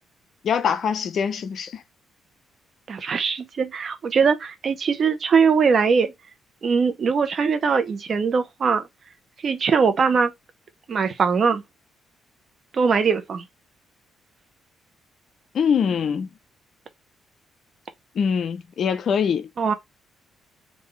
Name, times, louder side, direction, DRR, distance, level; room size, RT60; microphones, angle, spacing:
voice 1, 0.4-1.8 15.5-16.3 18.2-19.5, left 7 dB, 60° left, 0.5 m, -23 dB
voice 2, 2.9-6.1 6.6-8.8 9.4-10.3 10.9-11.6 12.7-13.4 19.6-19.7, right 5 dB, 50° right, 0.8 m, -21 dB
3.9 x 2.6 x 3.2 m
cardioid pair, 90°, 0 cm